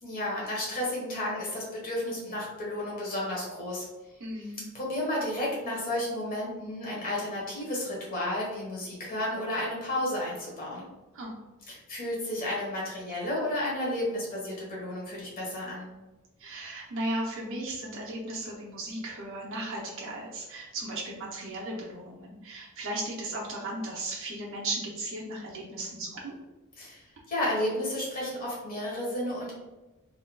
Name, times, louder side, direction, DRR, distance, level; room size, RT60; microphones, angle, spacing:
voice 1, 0.0-3.8 4.7-10.9 11.7-15.9 26.8-27.0 27.3-29.5, left 1 dB, 40° left, -4 dB, 1.3 m, -32 dB
voice 2, 4.2-4.6 11.1-11.3 16.4-26.4, right 1 dB, 60° right, -4 dB, 0.7 m, -36 dB
3.8 x 2.9 x 2.2 m, 1.1 s
head